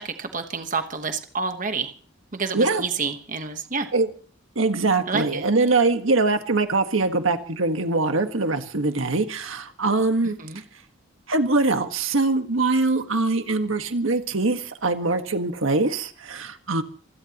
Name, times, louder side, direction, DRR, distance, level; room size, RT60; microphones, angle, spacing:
voice 1, 0.0-1.9 2.3-3.9 5.1-5.4 10.4-10.6, right 4 dB, 40° right, 6 dB, 1.2 m, -29 dB
voice 2, 4.5-10.4 11.3-16.8, right 3 dB, 80° right, 7 dB, 1.6 m, -23 dB
25.5 x 16.5 x 3.0 m, 0.43 s
head